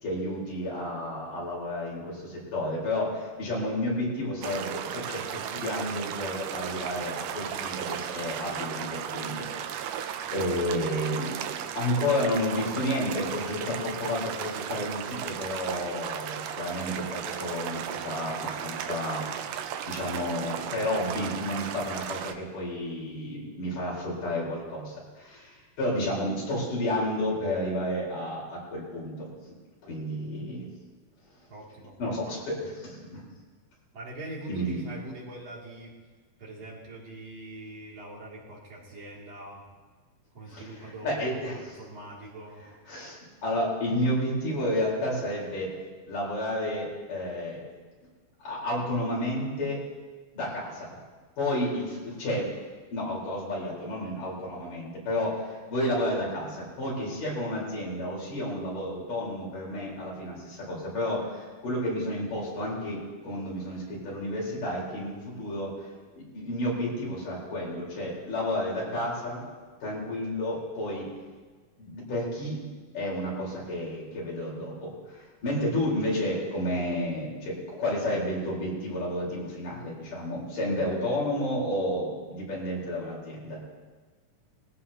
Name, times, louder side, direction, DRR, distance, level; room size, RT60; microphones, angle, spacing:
voice 1, 0.0-11.3 11.7-29.3 29.9-30.7 32.0-33.2 34.5-34.8 40.5-41.6 42.9-45.7 46.1-47.6 48.4-49.8 50.3-51.0 51.4-52.5 52.9-65.7 66.2-69.4 69.8-71.1 71.8-72.6 72.9-83.6, left 1 dB, 75° left, -5 dB, 5.8 m, -31 dB
sound 1, 4.4-22.3, right 9 dB, 80° right, 2.3 m, -35 dB
voice 2, 31.5-31.9 32.2-32.4 33.9-35.9 36.4-39.6 40.3-42.6, right 1 dB, 50° right, -5 dB, 3.7 m, -42 dB
21.0 x 15.0 x 2.9 m, 1.4 s
omnidirectional pair, 3.7 m